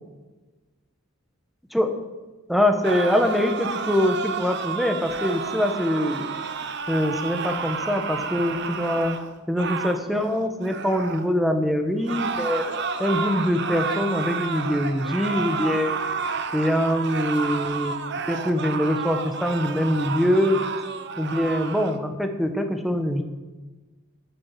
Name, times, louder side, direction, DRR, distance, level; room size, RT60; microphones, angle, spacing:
voice 1, 2.5-6.3 6.9-9.2 9.5-12.6 13.0-16.0 16.5-18.0 18.3-20.6 21.2-23.2, equal, ahead, 6 dB, 1.2 m, -23 dB
sound 1, 2.8-11.3 12.0-22.0, right 5 dB, 60° right, 1.0 m, -31 dB
12.0 x 8.6 x 7.8 m, 1.2 s
head